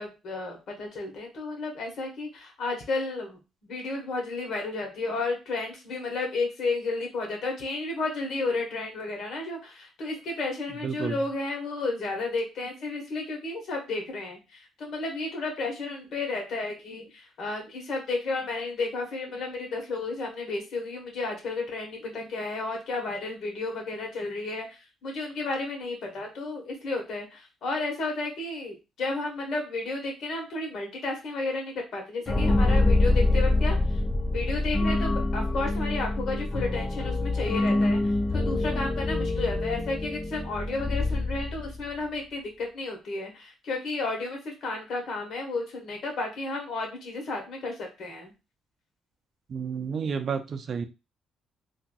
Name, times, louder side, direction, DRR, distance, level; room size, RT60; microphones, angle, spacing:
voice 1, 0.0-34.0 34.3-48.3, left 3 dB, 65° left, 1 dB, 1.3 m, -32 dB
voice 2, 10.8-11.2 49.5-50.8, right 6 dB, 55° right, 9 dB, 0.4 m, -31 dB
sound 1, 32.3-41.9, left 2 dB, 25° left, 0.4 m, -25 dB
3.3 x 2.5 x 2.3 m, 0.28 s
cardioid pair, 90°, 0 cm